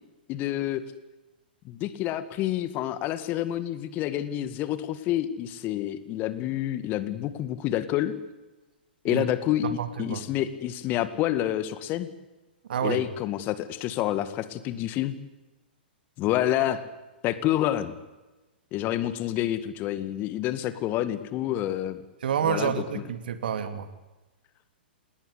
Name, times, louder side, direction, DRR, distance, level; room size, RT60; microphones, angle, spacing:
voice 1, 0.3-0.8 1.6-8.1 9.0-9.7 10.0-12.1 12.8-15.2 16.2-16.9 17.2-17.9 18.7-22.0 22.4-22.7, left 13 dB, 35° left, 13 dB, 2.1 m, -28 dB
voice 2, 9.6-10.2 12.7-13.0 22.2-23.9, right 8 dB, 65° right, 10 dB, 2.5 m, -28 dB
28.5 x 20.0 x 8.5 m, 1.1 s
figure-of-eight pair, 110°, 6 cm